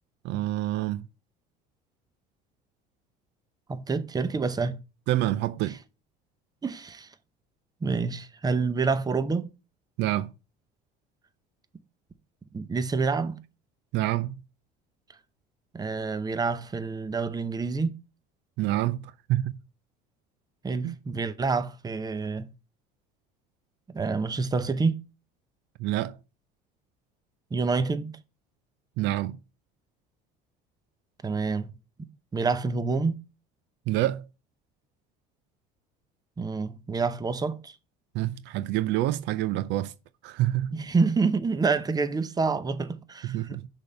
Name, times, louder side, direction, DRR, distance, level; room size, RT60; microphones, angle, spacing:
voice 1, 0.2-1.1 5.1-5.8 10.0-10.3 13.9-14.3 18.6-19.6 20.8-21.0 25.8-26.2 29.0-29.4 33.9-34.3 38.1-39.9 40.2-40.7 43.2-43.7, right 15 dB, 65° right, 0.4 m, -27 dB
voice 2, 3.7-4.8 6.6-7.1 7.8-9.5 12.5-13.4 15.7-18.0 20.6-22.5 23.9-24.9 27.5-28.1 31.2-31.7 32.3-33.2 36.4-37.8 40.7-43.6, right 4 dB, 20° right, 0.7 m, -27 dB
6.1 x 3.5 x 5.5 m
supercardioid pair, 90°, 20 cm